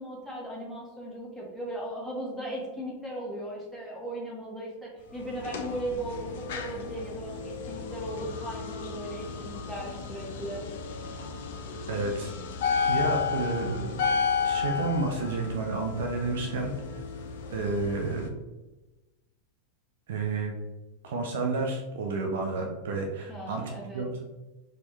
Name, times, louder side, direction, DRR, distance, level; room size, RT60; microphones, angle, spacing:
voice 1, 0.0-10.6 23.3-24.1, right 1 dB, ahead, -5 dB, 1.1 m, -37 dB
sound 1, 5.2-18.3, left 6 dB, 55° left, 0.4 m, -33 dB
voice 2, 11.9-12.3 12.9-14.1 14.4-16.7 17.5-18.3 20.1-20.5 21.0-24.2, right 3 dB, 60° right, 2 dB, 0.4 m, -30 dB
4.2 x 2.2 x 3.1 m, 1.1 s
figure-of-eight pair, 90°, 0 cm